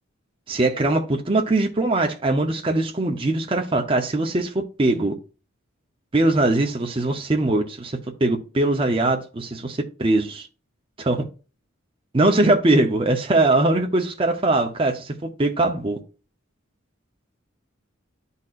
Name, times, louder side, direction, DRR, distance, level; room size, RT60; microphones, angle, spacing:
voice 1, 0.5-5.1 6.1-10.5 11.0-11.3 12.1-16.0, right 2 dB, 25° right, 0.7 m, -21 dB
12.0 x 4.1 x 2.5 m
head